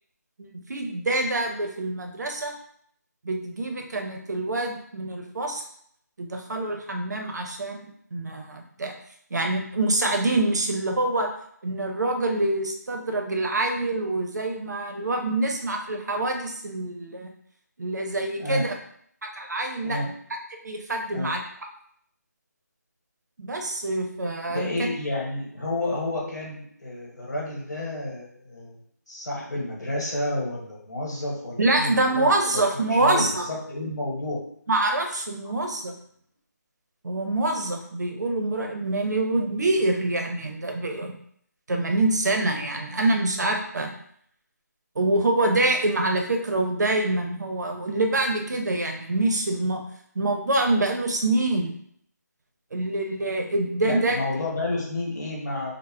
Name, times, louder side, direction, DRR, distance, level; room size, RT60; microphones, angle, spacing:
voice 1, 0.4-2.5 3.2-5.6 6.2-8.9 9.3-11.3 11.6-17.3 17.8-18.7 19.2-20.0 20.6-21.4 23.4-24.7 31.6-33.5 34.7-35.9 37.0-41.1 41.7-44.0 45.0-49.8 50.1-51.7 52.7-54.2, right 2 dB, 70° right, 3 dB, 0.6 m, -25 dB
voice 2, 24.5-28.8 29.1-32.6 32.9-34.4 53.8-55.8, left 1 dB, 75° left, -3 dB, 1.1 m, -30 dB
2.2 x 2.0 x 3.5 m, 0.65 s
figure-of-eight pair, 170°, 10 cm